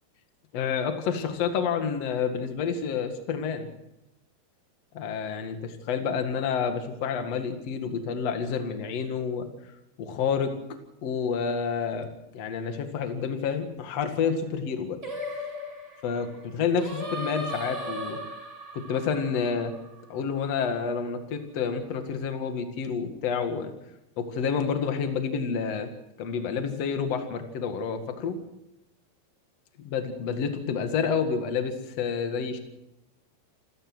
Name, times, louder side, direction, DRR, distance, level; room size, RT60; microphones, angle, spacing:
voice 1, 0.5-3.7 4.9-9.5 10.0-10.5 11.0-12.1 12.3-15.0 16.0-18.2 18.7-19.7 20.1-23.7 24.2-25.9 26.2-28.4 29.9-32.6, left 6 dB, 55° left, 7 dB, 1.9 m, -29 dB
Singing, 15.0-20.3, equal, 15° right, 6.2 m, -37 dB
28.0 x 15.0 x 6.2 m, 0.89 s
omnidirectional pair, 5.9 m